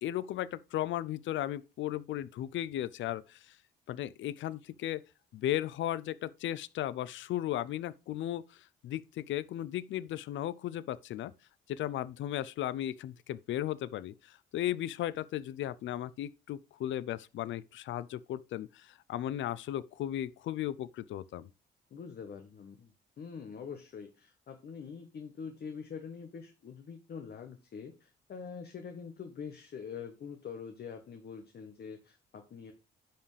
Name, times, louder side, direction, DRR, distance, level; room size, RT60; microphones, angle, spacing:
voice 1, 0.0-3.4 3.9-5.0 5.3-8.4 8.8-11.3 11.7-21.5, left 12 dB, 70° left, 0.5 m, -36 dB
voice 2, 21.9-32.7, left 6 dB, 55° left, 1.2 m, -45 dB
10.0 x 5.5 x 3.3 m
cardioid pair, 90°, 20 cm